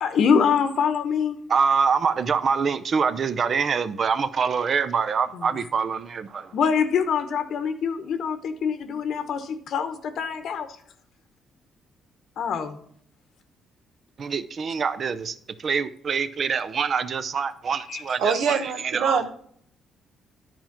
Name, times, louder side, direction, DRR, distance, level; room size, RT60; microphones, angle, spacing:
voice 1, 0.0-1.4 5.3-5.5 6.5-10.7 12.4-12.8 17.9-18.0, left 6 dB, 70° left, 0.9 m, -24 dB
voice 2, 1.5-6.5 14.2-19.2, right 6 dB, 50° right, 0.6 m, -25 dB
voice 3, 18.2-19.3, right 6 dB, 80° right, 0.9 m, -24 dB
10.5 x 4.5 x 5.8 m
cardioid pair, 90°, 0 cm